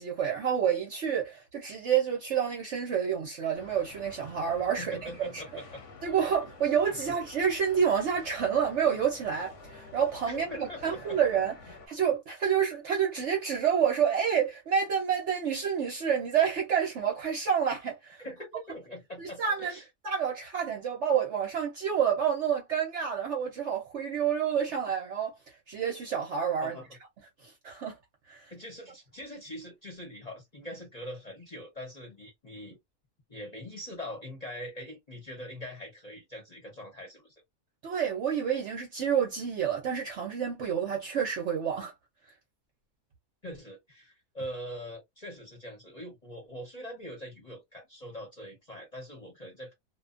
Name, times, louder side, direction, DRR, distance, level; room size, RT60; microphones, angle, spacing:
voice 1, 0.0-5.4 6.0-18.2 19.2-19.7 20.0-25.3 25.7-26.8 27.4-28.0 28.3-28.5 37.8-41.9, right 8 dB, 60° right, 0.8 m, -29 dB
sound 1, 3.5-11.9, left 3 dB, 60° left, 0.9 m, -49 dB
voice 2, 4.8-5.8 7.0-7.1 10.3-11.2 18.2-19.9 26.6-26.9 28.5-32.8 33.3-37.3 43.4-49.7, equal, 35° left, 0.8 m, -42 dB
2.5 x 2.2 x 2.4 m
omnidirectional pair, 1.7 m